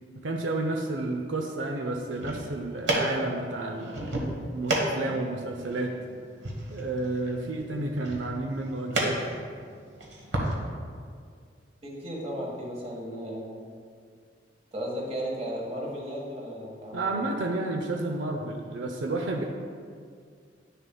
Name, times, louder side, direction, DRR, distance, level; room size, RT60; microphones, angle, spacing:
voice 1, 0.2-4.1 4.5-6.0 6.7-9.2 16.9-19.5, right 2 dB, 85° right, 3 dB, 0.6 m, -31 dB
sound 1, 2.0-10.5, right 1 dB, 70° right, 1.3 m, -33 dB
voice 2, 11.8-13.7 14.7-17.2, equal, 35° right, -2 dB, 1.5 m, -35 dB
10.5 x 6.6 x 2.3 m, 2.1 s
head